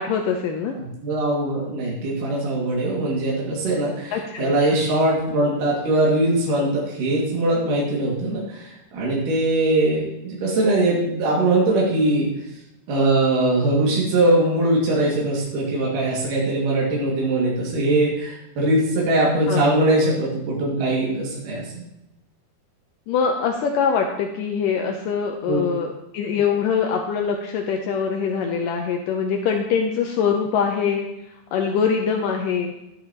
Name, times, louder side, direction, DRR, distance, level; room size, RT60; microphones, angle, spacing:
voice 1, 0.0-0.8 4.1-4.8 19.5-19.7 23.1-31.1 31.5-32.7, left 6 dB, 75° left, 2 dB, 2.3 m, -23 dB
voice 2, 0.8-12.3 12.9-21.8 25.5-25.6, right 2 dB, 70° right, -5 dB, 3.7 m, -21 dB
12.5 x 9.7 x 2.9 m, 0.88 s
omnidirectional pair, 4.1 m